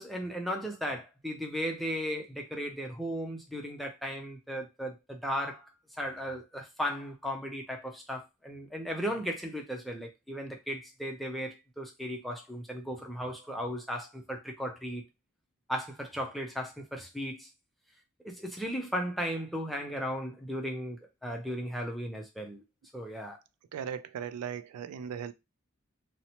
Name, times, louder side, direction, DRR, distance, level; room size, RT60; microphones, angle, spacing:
voice 1, 0.0-5.7 6.0-15.0 15.7-17.5 18.2-22.6 22.9-23.4, equal, ahead, 0.4 m, -36 dB
voice 2, 23.7-25.3, right 8 dB, 90° right, 0.3 m, -37 dB
2.8 x 2.0 x 2.7 m
head